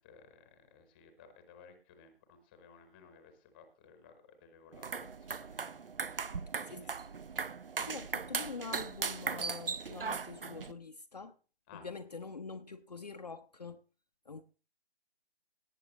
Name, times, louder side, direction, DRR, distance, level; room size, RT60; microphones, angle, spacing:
voice 1, 0.0-5.6 6.2-6.9 11.7-11.9, left 5 dB, 10° left, 8 dB, 1.0 m, -58 dB
sound 1, 4.7-10.7, right 5 dB, 55° right, 0.7 m, -38 dB
voice 2, 7.8-11.4 11.7-13.8 14.3-14.4, left 4 dB, 40° left, 5 dB, 0.6 m, -45 dB
18.0 x 9.1 x 3.0 m, 0.36 s
figure-of-eight pair, 150°, 33 cm